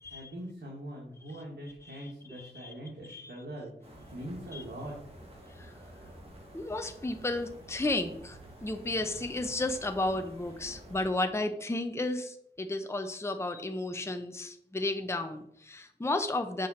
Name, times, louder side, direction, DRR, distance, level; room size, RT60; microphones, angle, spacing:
voice 1, 0.0-4.9, right 1 dB, 70° right, -3 dB, 2.1 m, -42 dB
voice 2, 1.8-2.7 3.1-3.3 4.5-4.6 5.5-5.7 6.5-16.7, left 2 dB, 15° left, 7 dB, 0.7 m, -33 dB
sound 1, 3.8-11.1, right 1 dB, 35° right, 2.6 m, -50 dB
7.5 x 6.2 x 4.3 m, 0.74 s
wide cardioid pair, 75°, 18 cm